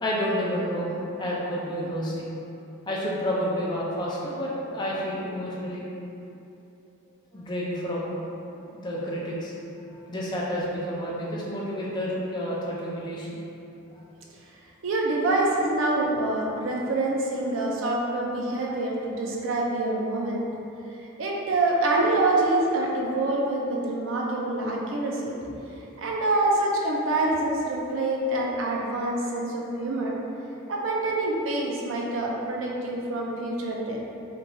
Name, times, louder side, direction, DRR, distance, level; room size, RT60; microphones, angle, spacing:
voice 1, 0.0-2.3 2.9-5.8 7.3-8.1 8.5-9.5 9.9-13.4 13.9-14.0, equal, 20° left, -6 dB, 0.4 m, -30 dB
voice 2, 14.8-20.4 21.2-25.5 26.0-30.1 30.7-34.0, right 2 dB, 65° right, -2 dB, 0.4 m, -26 dB
2.9 x 2.3 x 2.5 m, 2.8 s
head